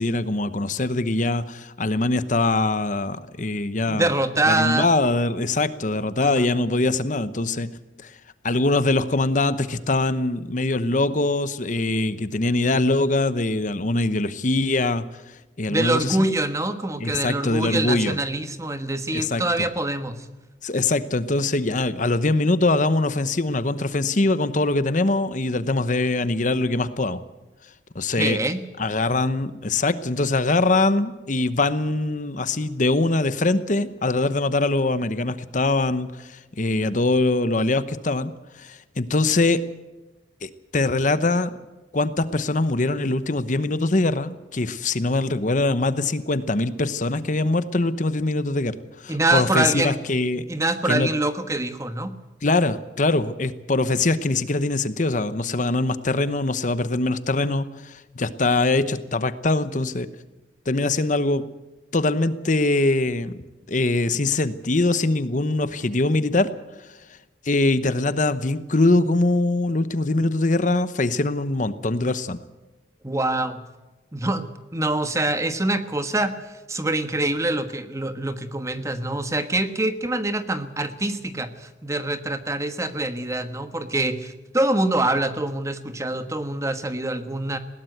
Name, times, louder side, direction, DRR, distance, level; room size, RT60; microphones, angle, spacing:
voice 1, 0.0-4.1 4.5-7.7 8.0-8.1 8.4-15.0 15.6-16.3 17.0-18.2 19.1-19.4 20.6-27.2 27.9-28.4 28.8-38.3 38.6-39.6 40.4-41.5 41.9-50.4 50.9-51.1 52.4-60.1 60.7-61.4 61.9-63.4 63.7-66.5 67.4-72.4, left 2 dB, 45° left, 13 dB, 0.9 m, -23 dB
voice 2, 3.9-4.9 6.2-6.4 15.7-20.2 28.2-28.6 49.1-50.0 50.5-52.1 73.0-73.6 74.1-76.3 76.7-87.6, right 2 dB, 15° right, 10 dB, 1.3 m, -25 dB
20.5 x 17.5 x 7.9 m, 1.1 s
head